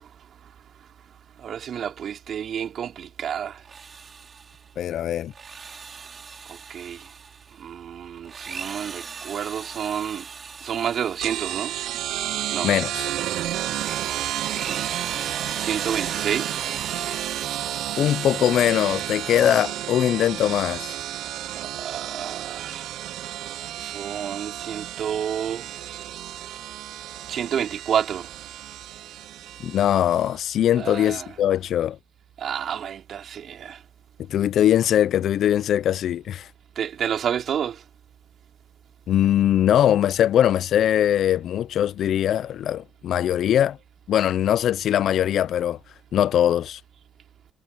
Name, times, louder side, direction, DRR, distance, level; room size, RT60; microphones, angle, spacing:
voice 1, 1.4-3.6 6.5-7.1 7.6-10.3 10.6-11.7 12.5-12.7 14.6-15.0 15.6-16.6 21.6-22.9 23.8-25.7 27.3-28.3 30.8-31.3 32.4-33.8 36.7-37.8, right 8 dB, 65° right, 4.9 m, -29 dB
Drill, 3.6-4.7 5.2-7.6 8.2-11.9 12.4-19.8, right 5 dB, 40° right, 5.1 m, -39 dB
voice 2, 4.8-5.3 12.6-13.1 18.0-21.0 29.6-32.0 34.3-36.5 39.1-43.8 44.1-45.8 46.1-46.8, left 11 dB, 70° left, 0.5 m, -21 dB
sound 1, 11.2-30.4, right 13 dB, 85° right, 0.6 m, -32 dB
cardioid pair, 90°, 0 cm